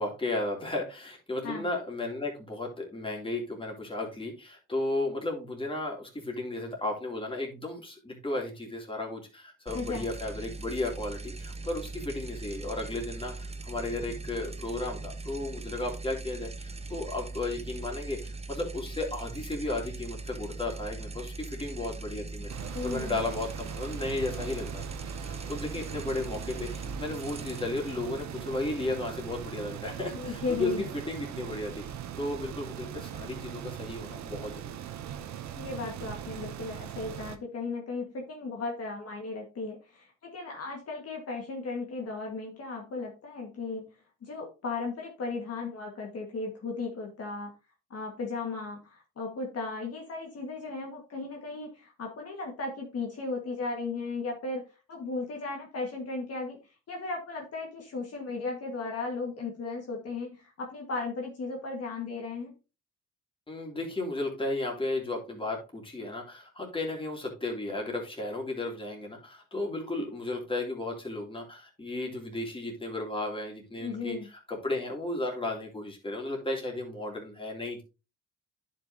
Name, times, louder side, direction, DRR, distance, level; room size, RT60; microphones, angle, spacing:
voice 1, 0.0-24.8 25.2-34.7 63.5-74.2 74.5-77.8, left 2 dB, 15° left, -1 dB, 3.0 m, -34 dB
sound 1, 9.7-28.9, right 3 dB, 20° right, 0.8 m, -40 dB
sound 2, 22.5-37.4, right 9 dB, 65° right, 0.9 m, -40 dB
voice 2, 22.7-23.2 30.1-30.9 35.5-43.8 44.2-47.5 47.9-54.6 54.9-56.6 56.9-62.5 73.8-74.3, left 3 dB, 50° left, 0 dB, 1.9 m, -36 dB
10.5 x 5.5 x 2.9 m, 0.29 s
cardioid pair, 90°, 30 cm